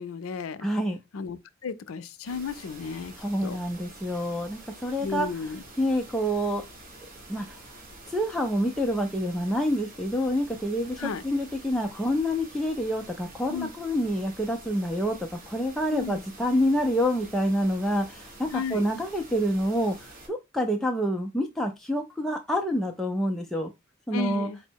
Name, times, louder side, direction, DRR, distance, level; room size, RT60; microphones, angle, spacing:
voice 1, 0.0-0.7 1.1-3.1 3.4-3.6 5.0-5.6 11.0-11.2 13.5-13.7 15.9-16.2 18.5-18.9 24.1-24.6, left 5 dB, 85° left, 0.4 m, -33 dB
voice 2, 0.6-1.0 3.2-6.6 7.3-7.6 8.1-23.7 24.1-24.5, equal, ahead, 0.4 m, -27 dB
sound 1, 2.2-20.3, right 2 dB, 45° right, 1.2 m, -47 dB
4.2 x 2.0 x 4.5 m
head